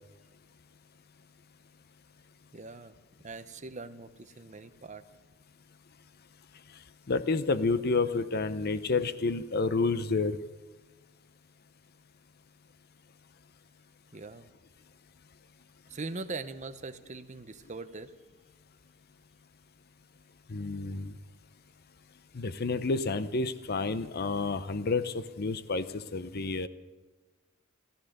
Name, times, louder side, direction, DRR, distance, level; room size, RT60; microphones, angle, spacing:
voice 1, 2.5-3.0 3.2-5.0 14.1-14.5 15.9-18.1, right 3 dB, 35° right, 10 dB, 0.8 m, -41 dB
voice 2, 7.1-10.4 20.5-21.1 22.3-26.7, left 3 dB, 50° left, 13 dB, 0.7 m, -29 dB
14.5 x 14.0 x 6.6 m, 1.3 s
head